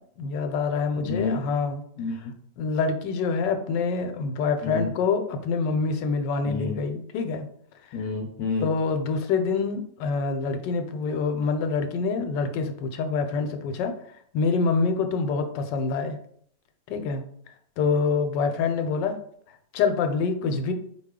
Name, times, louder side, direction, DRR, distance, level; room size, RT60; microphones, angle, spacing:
voice 1, 0.2-1.8 2.6-7.5 8.6-13.9 14.3-16.2 16.9-17.2 17.8-19.1 19.7-20.7, left 4 dB, 85° left, 7 dB, 1.2 m, -26 dB
voice 2, 1.0-1.4 2.0-2.3 4.6-4.9 6.4-6.7 7.9-8.7, left 4 dB, 70° left, 1 dB, 1.0 m, -29 dB
4.5 x 2.3 x 3.6 m, 0.65 s
omnidirectional pair, 1.9 m